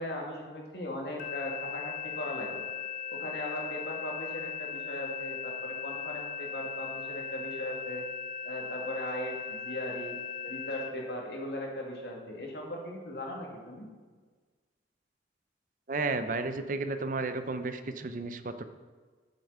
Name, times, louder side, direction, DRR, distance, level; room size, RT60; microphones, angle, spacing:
voice 1, 0.0-2.6 3.1-8.0 8.4-13.9, left 1 dB, 65° left, -1 dB, 2.1 m, -38 dB
sound 1, 1.2-10.9, left 6 dB, 50° left, 0.9 m, -38 dB
voice 2, 15.9-18.6, right 3 dB, 45° right, 10 dB, 0.5 m, -33 dB
8.3 x 8.0 x 5.4 m, 1.4 s
head